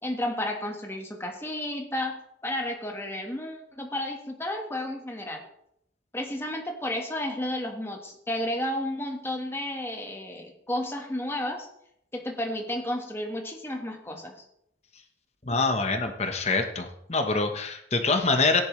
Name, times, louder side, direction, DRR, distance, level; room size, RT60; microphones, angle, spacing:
voice 1, 0.0-5.4 6.1-11.7 12.1-14.3, left 1 dB, 15° left, 2 dB, 1.5 m, -32 dB
voice 2, 15.4-18.6, left 3 dB, 35° left, 6 dB, 1.1 m, -25 dB
15.5 x 10.5 x 3.2 m, 0.76 s
head